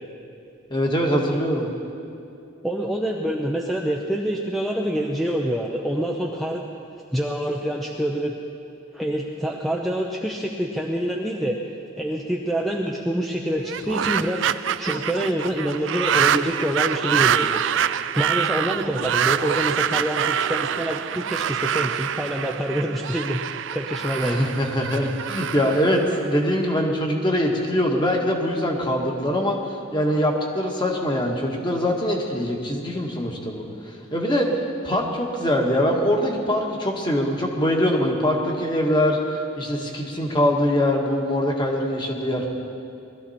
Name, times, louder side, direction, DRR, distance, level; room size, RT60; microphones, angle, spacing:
voice 1, 0.7-1.7 24.2-42.5, equal, 25° left, 0 dB, 1.6 m, -23 dB
voice 2, 2.6-6.7 7.1-8.4 8.9-11.6 12.0-14.4 14.8-23.4 23.7-24.4, equal, ahead, -1 dB, 0.7 m, -26 dB
sound 1, 13.6-26.8, right 9 dB, 70° right, 0.4 m, -25 dB
20.5 x 13.5 x 4.3 m, 2.6 s
head